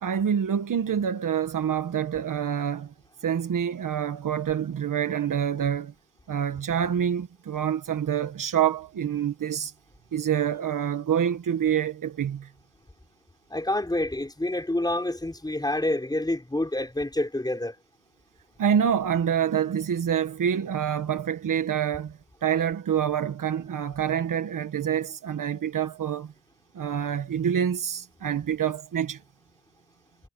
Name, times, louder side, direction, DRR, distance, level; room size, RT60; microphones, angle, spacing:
voice 1, 0.0-2.9 3.2-5.9 6.3-9.7 10.1-12.5 18.6-26.3 26.7-29.2, right 8 dB, 90° right, 1.2 m, -26 dB
voice 2, 13.5-17.7, left 1 dB, 10° left, 5.2 m, -27 dB
wide cardioid pair, 160°, 31 cm